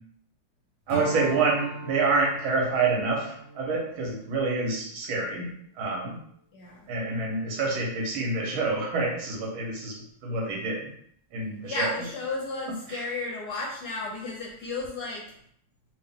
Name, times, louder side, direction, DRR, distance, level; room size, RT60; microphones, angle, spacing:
Strum, 0.9-5.6, right 2 dB, 35° right, 0.7 m, -40 dB
voice 1, 0.9-6.2 6.9-10.9 11.3-11.9 12.9-13.1, right 3 dB, 80° right, -1 dB, 1.7 m, -27 dB
voice 2, 6.5-6.9 11.6-15.3, left 3 dB, 70° left, -1 dB, 1.0 m, -33 dB
3.7 x 2.7 x 3.5 m, 0.66 s
omnidirectional pair, 2.2 m